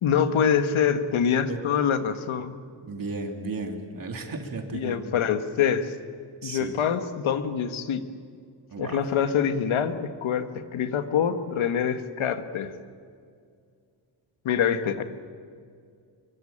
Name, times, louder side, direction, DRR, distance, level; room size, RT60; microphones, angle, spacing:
voice 1, 0.0-2.6 4.7-5.9 6.4-8.0 8.8-12.7 14.5-15.0, left 7 dB, 90° left, 8 dB, 1.8 m, -25 dB
voice 2, 2.8-5.1 6.4-6.7 8.7-9.0, right 3 dB, 45° right, 3 dB, 3.1 m, -34 dB
24.5 x 23.5 x 8.9 m, 2.2 s
wide cardioid pair, 140°, 47 cm